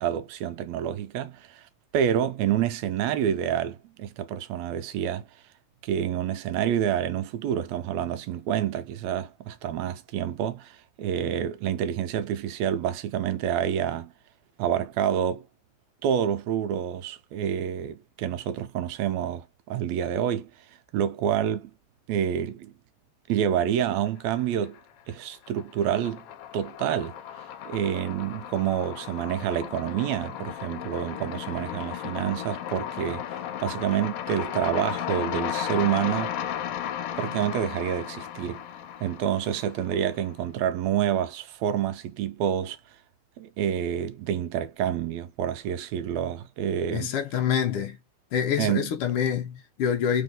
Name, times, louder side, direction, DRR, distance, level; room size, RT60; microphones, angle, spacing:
voice 1, 0.0-5.3 5.8-14.1 14.6-15.5 16.0-20.5 20.9-21.7 22.1-22.7 23.3-24.8 25.1-26.2 26.5-36.4 37.2-38.6 39.0-42.8 43.4-47.1 48.6-48.9, right 9 dB, 80° right, 1.7 m, -28 dB
sound 1, 24.1-24.8 25.1-40.3, left 10 dB, 85° left, 1.3 m, -35 dB
voice 2, 46.9-48.0 48.3-50.2, left 8 dB, 70° left, 1.4 m, -26 dB
3.9 x 3.5 x 3.7 m
omnidirectional pair, 3.4 m